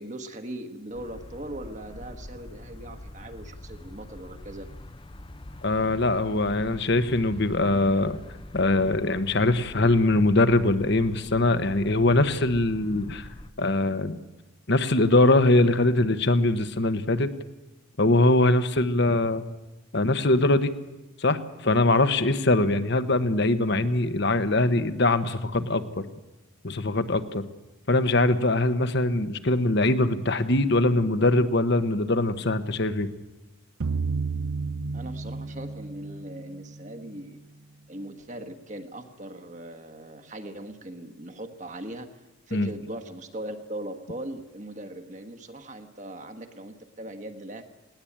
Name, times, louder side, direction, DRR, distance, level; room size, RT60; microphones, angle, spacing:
voice 1, 0.0-4.7 34.9-37.4 37.9-42.1 42.5-47.6, right 1 dB, 35° right, 6 dB, 1.3 m, -39 dB
sound 1, 0.9-13.5, left 1 dB, 25° left, 0.7 m, -44 dB
voice 2, 5.6-8.2 8.5-13.3 13.6-14.2 14.7-17.3 18.0-19.4 19.9-20.7 21.2-26.0 26.6-27.4 27.9-33.1 42.5-42.7, left 2 dB, 55° left, 11 dB, 1.1 m, -22 dB
sound 2, 33.8-36.9, right 4 dB, 85° right, 0.7 m, -31 dB
19.5 x 17.5 x 8.7 m, 1.0 s
head